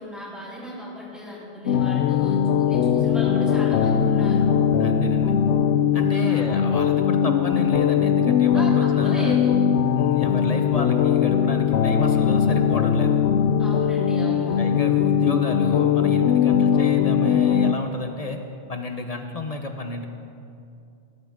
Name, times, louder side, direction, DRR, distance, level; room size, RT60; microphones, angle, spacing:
voice 1, 0.0-4.5 6.1-6.5 8.5-9.7 13.6-14.6, equal, ahead, -7 dB, 3.5 m, -36 dB
sound 1, 1.7-17.7, left 8 dB, 90° left, 0.9 m, -20 dB
voice 2, 4.8-5.3 5.9-9.4 10.0-13.2 14.6-18.4 18.7-20.1, left 2 dB, 40° left, 5 dB, 0.8 m, -31 dB
18.5 x 12.0 x 3.7 m, 2.5 s
omnidirectional pair, 1.1 m